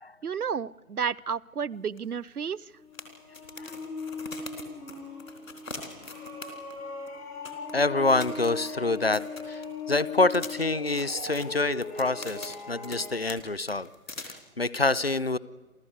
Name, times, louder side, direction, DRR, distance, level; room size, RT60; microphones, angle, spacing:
voice 1, 0.2-2.7, right 6 dB, 80° right, 26 dB, 0.6 m, -31 dB
sound 1, 2.0-2.1 2.3-2.4 2.9-6.8 7.1-7.2 7.4-7.7 8.1-9.9 10.3-13.0 13.3-13.4 13.7-14.3, left 3 dB, 60° left, 4.0 m, -42 dB
sound 2, 2.7-13.3, left 3 dB, 80° left, 5.6 m, -39 dB
voice 2, 7.7-13.9 14.2-15.4, left 3 dB, 45° left, 19 dB, 0.7 m, -27 dB
27.5 x 15.0 x 8.2 m, 1.2 s
figure-of-eight pair, 155°, 45 cm